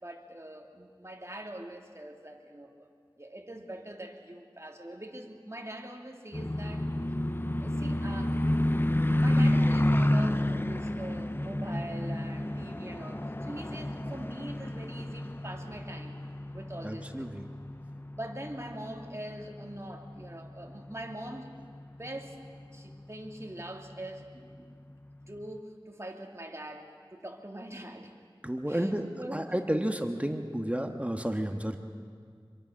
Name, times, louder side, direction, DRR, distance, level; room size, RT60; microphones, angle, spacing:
voice 1, 0.0-2.9 3.2-6.9 7.6-8.5 8.8-16.2 16.5-17.3 18.2-21.5 21.9-22.4 22.7-24.3 25.3-28.2 28.7-30.0, right 1 dB, 30° right, 2 dB, 2.6 m, -43 dB
sound 1, 6.3-22.5 22.9-23.0 23.4-23.6 24.1-24.2, left 1 dB, 25° left, 0.8 m, -30 dB
voice 2, 16.8-17.4 28.4-31.8, right 1 dB, 15° right, 5 dB, 1.5 m, -31 dB
26.5 x 22.5 x 6.5 m, 2.1 s
wide cardioid pair, 50°, 9 cm